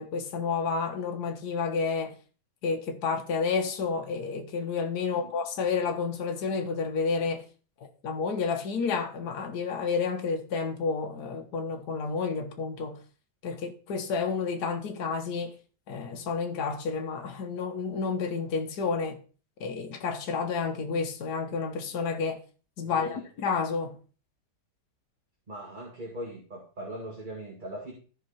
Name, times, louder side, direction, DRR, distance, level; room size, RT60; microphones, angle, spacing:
voice 1, 0.0-2.2 2.6-7.4 8.0-13.0 13.4-15.6 15.9-19.2 19.6-22.4 22.8-24.0, left 5 dB, 70° left, 1.6 m, -30 dB
voice 2, 22.8-23.3 25.5-27.9, right 1 dB, 25° right, 2.3 m, -40 dB
13.5 x 5.6 x 4.2 m
omnidirectional pair, 1.8 m